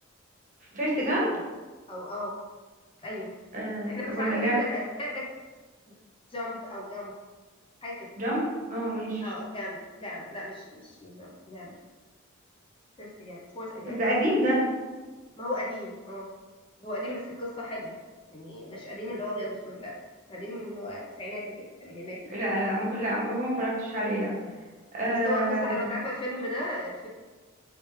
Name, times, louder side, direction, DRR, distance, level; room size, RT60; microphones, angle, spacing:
voice 1, 0.7-1.3 3.5-4.6 8.2-9.2 13.8-14.6 22.3-24.3 24.9-25.8, right 1 dB, 40° right, -5 dB, 1.1 m, -27 dB
voice 2, 1.9-2.4 3.0-3.3 3.9-5.3 6.3-7.1 7.8-8.1 9.2-11.7 13.0-14.0 15.4-16.3 16.8-18.0 18.3-20.0 20.3-22.2 25.2-27.1, left 1 dB, 25° left, -4 dB, 0.6 m, -36 dB
3.2 x 3.1 x 3.1 m, 1.3 s
head